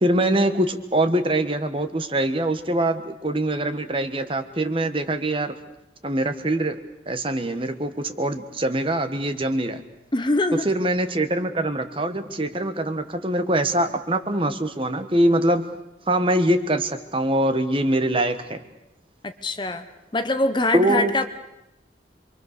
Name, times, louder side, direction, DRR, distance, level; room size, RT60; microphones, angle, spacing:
voice 1, 0.0-5.5 6.0-6.8 7.1-9.8 10.5-15.6 16.1-18.6 20.7-21.3, right 1 dB, 30° right, 9 dB, 1.4 m, -23 dB
voice 2, 10.1-10.7 19.2-19.8 20.1-21.3, left 2 dB, 25° left, 9 dB, 1.0 m, -23 dB
27.5 x 23.5 x 6.7 m, 0.89 s
head